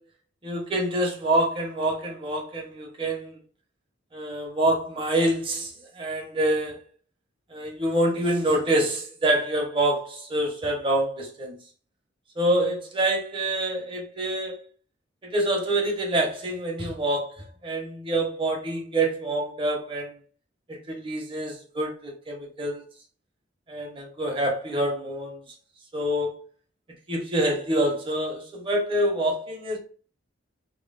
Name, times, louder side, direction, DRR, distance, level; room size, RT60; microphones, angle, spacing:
voice 1, 0.4-3.4 4.1-6.8 7.5-11.6 12.3-14.6 15.2-20.2 20.7-22.8 23.7-25.4 25.9-26.4 27.1-29.8, right 1 dB, 25° right, 1.2 m, -26 dB
3.1 x 3.0 x 4.1 m
head